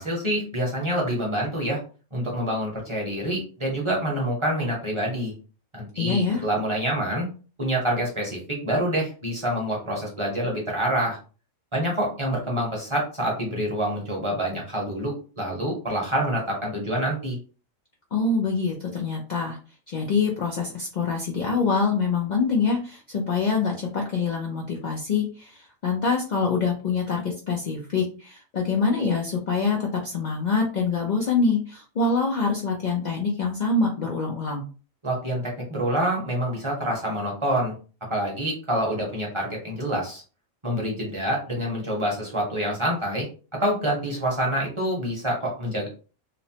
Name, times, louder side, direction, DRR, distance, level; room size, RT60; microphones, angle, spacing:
voice 1, 0.0-1.8 2.1-5.3 5.7-7.3 7.6-11.2 11.7-17.4 35.0-37.7 38.1-40.2 40.6-43.3 43.6-45.9, right 1 dB, 30° right, -3 dB, 0.7 m, -27 dB
voice 2, 6.0-6.4 18.1-19.6 19.9-34.7, left 4 dB, 80° left, -1 dB, 0.4 m, -25 dB
3.0 x 2.0 x 2.7 m, 0.37 s
omnidirectional pair, 1.4 m